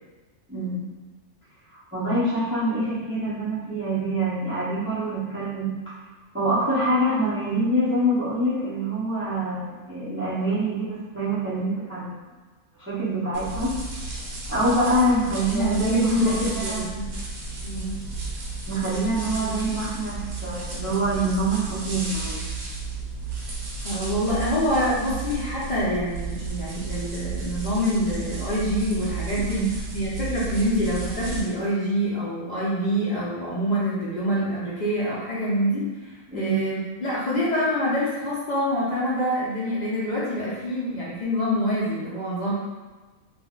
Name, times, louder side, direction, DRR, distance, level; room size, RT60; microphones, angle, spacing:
voice 1, 0.5-0.9 1.7-5.9 6.3-12.1 12.8-13.8 14.5-16.9 18.7-22.4 29.4-29.7 36.3-36.6, right 1 dB, 15° right, -10 dB, 0.4 m, -25 dB
sound 1, 13.3-31.4, right 3 dB, 60° right, 0.9 m, -33 dB
voice 2, 15.5-16.3 16.6-17.0 17.6-18.0 23.8-29.6 29.9-42.5, equal, 65° left, -9 dB, 0.4 m, -26 dB
2.5 x 2.1 x 3.6 m, 1.3 s
omnidirectional pair, 1.5 m